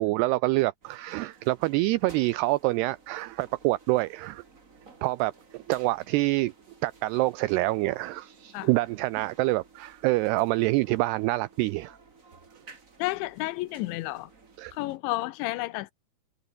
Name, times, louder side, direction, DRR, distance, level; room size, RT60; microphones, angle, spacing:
voice 1, 0.0-4.4 5.0-6.5 6.8-12.0 14.6-14.7, right 20 dB, 85° right, 2.3 m, -26 dB
sound 1, 0.8-15.0, right 4 dB, 30° right, 1.5 m, -55 dB
voice 2, 13.0-14.3 14.7-15.9, left 18 dB, 80° left, 3.1 m, -31 dB
omnidirectional pair, 5.3 m